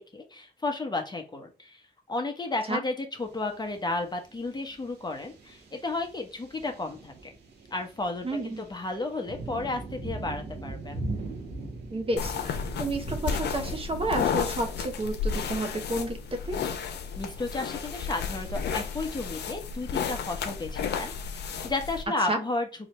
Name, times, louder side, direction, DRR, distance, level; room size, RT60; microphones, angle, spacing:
voice 1, 0.0-1.8 2.1-7.3 7.7-11.0 17.2-22.7, left 2 dB, 25° left, 4 dB, 1.0 m, -33 dB
sound 1, 3.2-19.1, right 2 dB, 80° right, 1.3 m, -42 dB
voice 2, 8.2-8.6 11.9-16.2 16.4-16.6 22.3-22.4, right 2 dB, 35° right, 4 dB, 1.0 m, -31 dB
sound 2, 12.2-22.0, left 6 dB, 85° left, 0.6 m, -32 dB
4.1 x 2.8 x 3.1 m, 0.34 s
cardioid pair, 80°, 17 cm